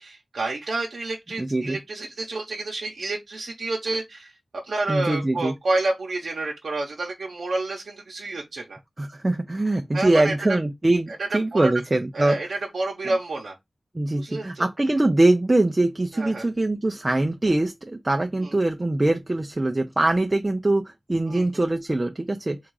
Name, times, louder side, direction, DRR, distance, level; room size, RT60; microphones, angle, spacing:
voice 1, 0.0-4.3 4.6-8.8 9.9-10.3 11.2-11.7 12.1-13.6 14.1-14.7 16.1-16.5 18.4-18.5 21.2-21.5, right 2 dB, 80° right, 0.8 m, -29 dB
voice 2, 1.4-1.8 4.9-5.5 9.0-12.4 13.9-22.6, right 2 dB, 25° right, 0.4 m, -23 dB
3.7 x 2.4 x 4.6 m
wide cardioid pair, 105°, 0 cm